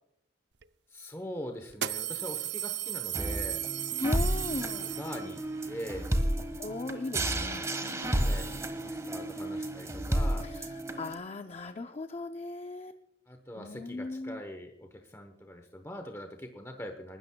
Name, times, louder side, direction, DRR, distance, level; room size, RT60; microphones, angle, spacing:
sound 1, 0.6-0.7 1.7-5.5, right 13 dB, 70° right, 0.5 m, -35 dB
voice 1, 0.9-3.6 4.8-6.1 8.1-8.5 8.8-10.5 13.3-17.2, equal, 15° left, 5 dB, 0.9 m, -42 dB
sound 2, 3.1-11.1, right 1 dB, 15° right, 1.3 m, -32 dB
voice 2, 4.0-4.9 6.6-8.0 10.4-13.0 13.6-14.4, left 2 dB, 35° left, 7 dB, 0.5 m, -38 dB
29.0 x 13.0 x 2.2 m, 0.80 s
head